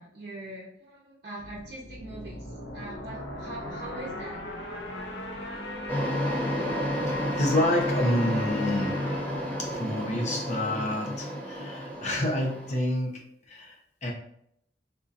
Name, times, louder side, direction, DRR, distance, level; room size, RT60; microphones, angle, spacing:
voice 1, 0.0-2.5 2.7-4.4, right 1 dB, 55° right, -5 dB, 0.6 m, -42 dB
sound 1, 1.4-10.9, left 1 dB, 80° left, 0.6 m, -38 dB
sound 2, 5.9-12.8, equal, 10° left, 0.9 m, -31 dB
voice 2, 7.1-9.3 9.6-14.1, left 1 dB, 40° left, 0 dB, 0.7 m, -29 dB
3.7 x 2.7 x 2.5 m, 0.73 s
head